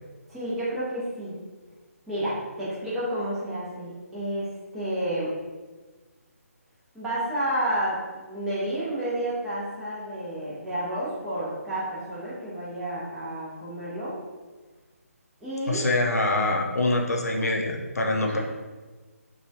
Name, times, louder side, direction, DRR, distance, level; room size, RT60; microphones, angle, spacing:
voice 1, 0.3-1.3 2.1-5.3 6.9-14.2 15.4-15.8 18.3-18.4, right 1 dB, 5° right, -11 dB, 0.6 m, -30 dB
voice 2, 15.7-18.4, left 2 dB, 75° left, 1 dB, 0.5 m, -25 dB
2.9 x 2.3 x 2.6 m, 1.3 s
figure-of-eight pair, 150°, 8 cm